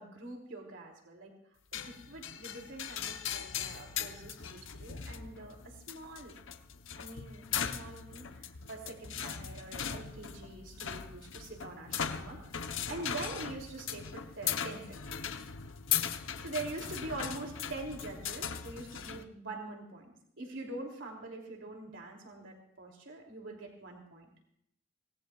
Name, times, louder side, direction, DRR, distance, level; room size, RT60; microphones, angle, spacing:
voice 1, 0.0-1.3 1.7-6.4 7.0-15.2 16.4-24.2, right 2 dB, 75° right, 1 dB, 2.9 m, -44 dB
sound 1, 1.7-19.2, left 8 dB, 80° left, 0.9 m, -39 dB
25.0 x 18.0 x 2.4 m, 0.68 s
head